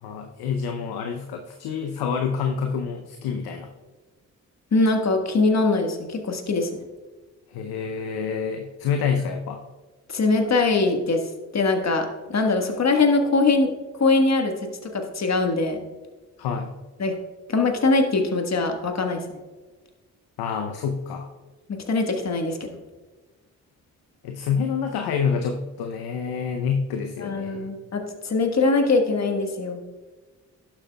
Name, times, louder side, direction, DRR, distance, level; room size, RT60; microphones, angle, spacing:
voice 1, 0.0-3.7 7.5-9.6 16.4-16.7 20.4-21.3 24.2-27.7, left 6 dB, 75° left, 5 dB, 0.7 m, -27 dB
voice 2, 4.7-6.7 10.1-11.2 11.5-14.5 14.8-15.8 17.0-17.2 17.5-19.4 21.7-22.7 27.2-29.8, left 3 dB, 45° left, 4 dB, 1.4 m, -22 dB
11.5 x 7.3 x 2.3 m, 1.3 s
hypercardioid pair, 40°, 38 cm